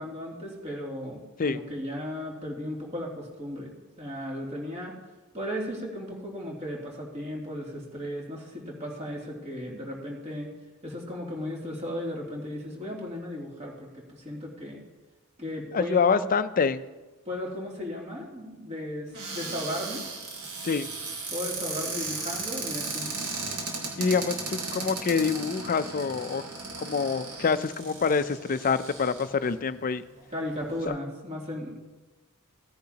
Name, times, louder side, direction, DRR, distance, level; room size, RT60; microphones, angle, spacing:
voice 1, 0.0-3.7 4.0-4.9 5.3-10.5 10.8-14.8 15.4-16.3 17.2-20.0 21.3-23.1 30.3-31.7, left 1 dB, 30° right, -2 dB, 2.8 m, -35 dB
voice 2, 15.7-16.8 20.6-20.9 24.0-26.4 26.8-30.0 30.9-31.0, left 5 dB, 40° left, 12 dB, 0.5 m, -26 dB
Cupboard open or close, 19.1-29.5 30.2-30.3 30.5-30.9, right 3 dB, 70° right, 3.3 m, -36 dB
16.5 x 10.5 x 2.9 m, 1.2 s
head